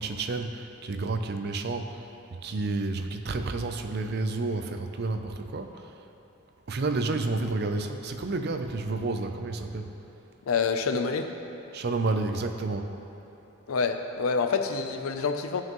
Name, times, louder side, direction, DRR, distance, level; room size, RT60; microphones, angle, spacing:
voice 1, 0.0-2.1 2.4-6.0 6.7-9.9 11.7-12.9, right 3 dB, 50° right, 6 dB, 0.5 m, -30 dB
voice 2, 10.5-11.3 13.7-15.6, left 5 dB, 90° left, 6 dB, 0.5 m, -27 dB
13.0 x 5.6 x 3.1 m, 2.9 s
head